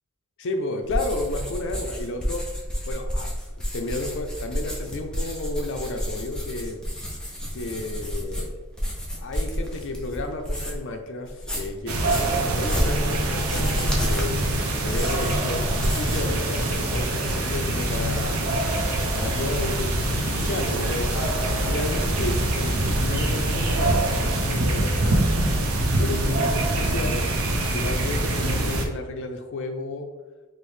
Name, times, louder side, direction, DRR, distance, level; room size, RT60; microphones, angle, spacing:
voice 1, 0.4-2.5 2.9-3.3 3.6-6.8 7.5-8.6 9.2-14.5 14.8-18.4 19.1-21.4 21.6-25.2 26.0-27.2 27.7-30.1, left 2 dB, 60° left, 5 dB, 0.5 m, -32 dB
sound 1, 0.8-10.9 11.3-16.3 16.6-17.1, equal, 5° left, 0.5 m, -30 dB
sound 2, 11.9-28.9, right 1 dB, 90° right, 0.6 m, -24 dB
sound 3, 14.2-24.2, left 1 dB, 30° left, 1.5 m, -44 dB
4.3 x 2.1 x 3.2 m, 1.2 s
head